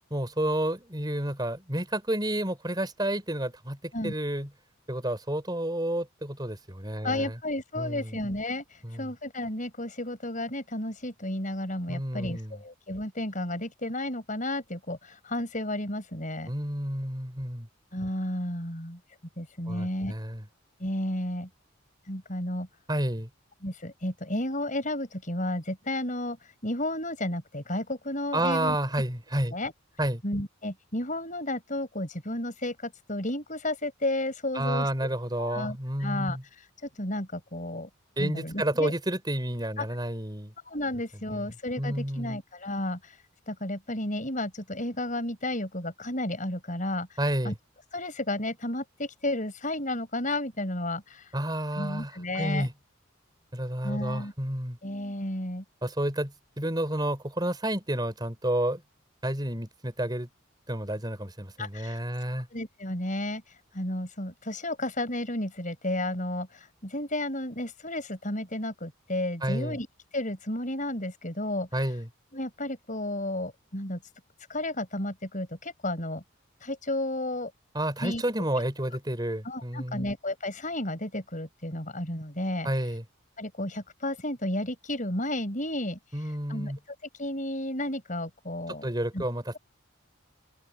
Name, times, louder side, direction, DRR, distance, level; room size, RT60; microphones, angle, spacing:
voice 1, 0.1-4.5 4.9-7.4 7.8-8.2 8.8-9.1 11.9-12.6 16.5-17.7 19.7-20.4 22.9-23.3 28.3-29.6 30.0-30.2 34.6-36.4 38.2-40.5 41.3-41.5 41.8-42.4 47.2-47.6 51.3-52.7 53.5-54.8 55.8-58.8 59.2-60.3 60.7-62.5 69.4-69.8 71.7-72.1 77.7-80.1 82.6-83.0 86.1-86.8 88.8-89.6, right 1 dB, 20° right, 5.2 m, -30 dB
voice 2, 7.0-16.5 17.9-19.0 19.4-20.1 20.8-21.5 22.1-22.7 23.6-28.8 29.5-29.7 30.2-34.9 35.4-36.7 37.0-37.9 38.2-38.9 39.8-39.9 40.6-43.2 43.5-47.2 47.4-47.5 47.9-51.4 51.8-52.7 53.8-54.3 54.8-55.6 61.6-62.0 62.5-69.9 70.1-71.9 72.3-74.0 74.5-76.2 76.6-77.5 78.0-78.2 79.4-82.7 83.4-88.9 89.1-89.2, left 1 dB, 40° left, 7.3 m, -32 dB
head